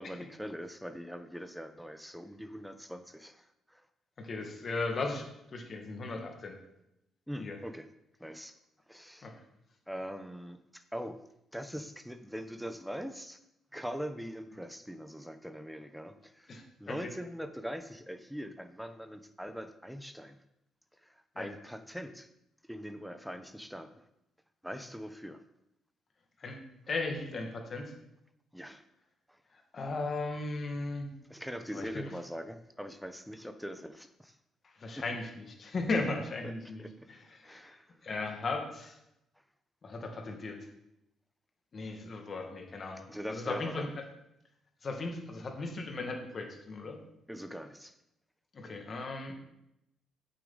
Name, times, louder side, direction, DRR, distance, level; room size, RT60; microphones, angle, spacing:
voice 1, 0.0-3.8 7.3-7.9 8.2-8.5 8.9-9.3 9.9-11.2 11.5-13.4 13.7-20.4 21.0-22.3 22.7-24.0 24.6-25.4 28.5-28.8 29.3-29.4 31.3-34.3 35.0-35.1 36.4-36.5 36.8-37.1 37.4-38.0 43.1-43.9 47.3-47.9, equal, ahead, 9 dB, 0.8 m, -42 dB
voice 2, 4.2-6.6 7.4-7.6 9.2-9.3 16.5-17.1 21.4-21.5 26.4-26.6 26.9-27.9 29.5-31.1 31.7-32.1 34.8-37.8 38.0-39.0 39.8-40.6 41.7-43.9 44.8-47.0 48.5-49.3, left 3 dB, 45° left, 3 dB, 1.8 m, -37 dB
8.4 x 6.9 x 3.9 m, 0.83 s
cardioid pair, 90°, 0 cm